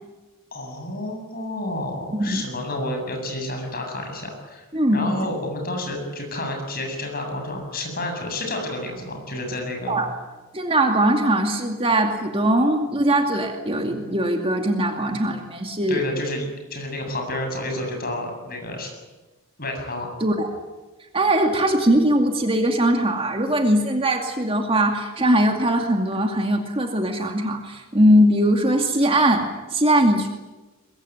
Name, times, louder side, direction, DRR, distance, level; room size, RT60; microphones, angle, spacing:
voice 1, 0.5-4.6 4.9-10.0 15.9-18.9 19.6-20.1, left 1 dB, 40° left, 3 dB, 7.9 m, -30 dB
voice 2, 2.1-2.4 4.7-5.1 9.9-10.1 10.5-16.0 20.2-20.5 21.1-30.3, right 1 dB, 25° right, 3 dB, 2.4 m, -20 dB
23.0 x 22.5 x 9.5 m, 1.2 s
head